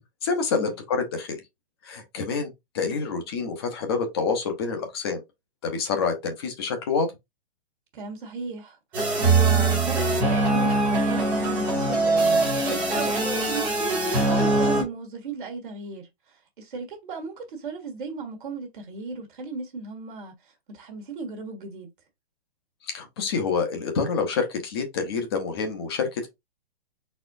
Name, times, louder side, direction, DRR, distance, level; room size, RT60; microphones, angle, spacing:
voice 1, 0.2-1.4 1.8-5.2 5.6-7.1 12.9-13.1 22.9-26.3, left 5 dB, 25° left, 0.9 m, -27 dB
voice 2, 7.9-21.9, right 4 dB, 55° right, 1.5 m, -36 dB
sound 1, 8.9-14.8, right 2 dB, 5° right, 0.6 m, -22 dB
4.2 x 4.2 x 2.6 m
hypercardioid pair, 170°, 31 cm